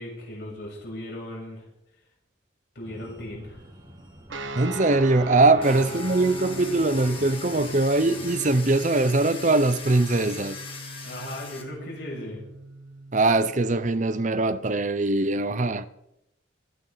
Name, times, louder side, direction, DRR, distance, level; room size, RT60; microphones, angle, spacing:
voice 1, 0.0-1.6 2.7-3.6 5.6-5.8 11.0-12.4, left 1 dB, 60° left, 7.5 m, -37 dB
sound 1, 2.8-8.6, right 1 dB, 25° right, 7.8 m, -48 dB
sound 2, 4.3-13.3, right 2 dB, 85° right, 1.5 m, -38 dB
voice 2, 4.6-10.6 13.1-15.9, right 2 dB, 40° right, 0.8 m, -22 dB
Domestic sounds home sounds, 5.6-11.6, left 5 dB, 30° left, 2.3 m, -40 dB
27.0 x 12.0 x 4.1 m
head